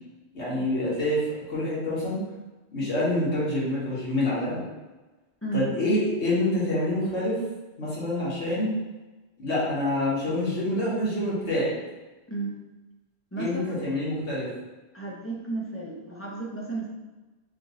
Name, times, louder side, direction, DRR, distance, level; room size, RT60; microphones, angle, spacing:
voice 1, 0.3-1.2 1.5-2.2 2.7-4.6 5.5-7.4 7.8-8.7 9.4-11.7 13.4-14.5, left 1 dB, 90° left, -8 dB, 1.7 m, -26 dB
voice 2, 13.3-13.9 14.9-16.9, right 3 dB, 15° left, -4 dB, 0.5 m, -33 dB
3.7 x 2.6 x 4.0 m, 1.2 s
omnidirectional pair, 1.1 m